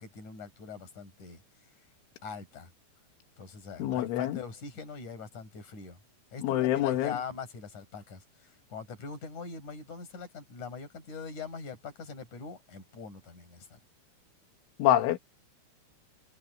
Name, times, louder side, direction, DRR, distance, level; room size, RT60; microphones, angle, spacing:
voice 1, 0.0-1.4 2.2-2.7 3.4-6.0 6.3-13.8, left 5 dB, 40° left, 7.7 m, -42 dB
voice 2, 3.8-4.4 6.4-7.1 14.8-15.2, left 12 dB, 85° left, 4.2 m, -26 dB
omnidirectional pair, 5.4 m